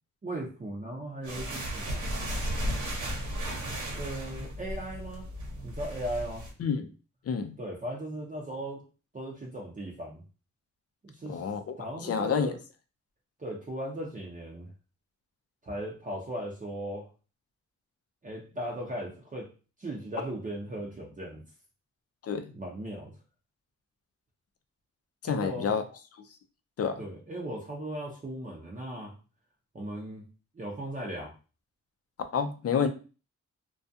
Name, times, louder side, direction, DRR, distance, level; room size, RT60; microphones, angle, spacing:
voice 1, 0.2-2.0 3.9-5.3 5.6-6.5 7.6-8.8 9.1-10.2 11.0-11.5 11.8-12.6 13.4-14.7 15.6-17.1 18.2-19.5 19.8-21.4 22.5-23.1 25.3-25.7 27.0-29.1 29.7-30.2 30.5-31.3, right 1 dB, 25° right, -2 dB, 0.7 m, -37 dB
sound 1, 1.2-6.5, equal, 80° right, 1.0 m, -34 dB
voice 2, 7.3-7.6 11.3-11.7 12.0-12.5 22.2-22.5 25.2-25.8 26.8-27.0 32.3-32.9, left 6 dB, 55° left, 8 dB, 0.5 m, -28 dB
2.3 x 2.3 x 2.6 m, 0.34 s
cardioid pair, 65°, 30 cm